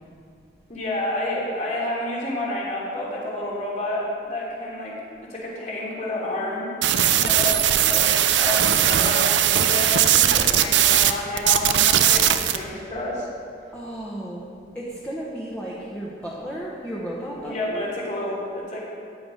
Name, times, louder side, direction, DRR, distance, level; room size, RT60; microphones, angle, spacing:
voice 1, 0.7-4.9 5.2-6.7 7.2-8.1 8.3-13.3 17.4-18.8, left 1 dB, 40° left, -5 dB, 3.1 m, -29 dB
sound 1, 6.8-11.1 11.4-12.6, right 11 dB, 85° right, 0.5 m, -19 dB
voice 2, 13.7-17.8, right 1 dB, 10° left, -5 dB, 1.2 m, -34 dB
14.0 x 9.9 x 5.1 m, 2.5 s
head